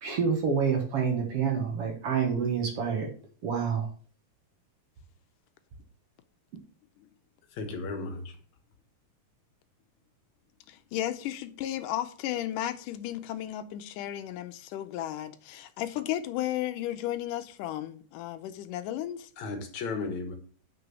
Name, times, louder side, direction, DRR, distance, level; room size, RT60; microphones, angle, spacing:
voice 1, 0.0-3.1 3.4-3.9, right 6 dB, 55° right, 2.0 m, -27 dB
voice 2, 7.5-8.4 19.4-20.3, left 3 dB, 65° left, 2.5 m, -35 dB
voice 3, 10.7-19.3, left 12 dB, 85° left, 2.2 m, -34 dB
6.2 x 6.1 x 6.2 m
omnidirectional pair, 3.7 m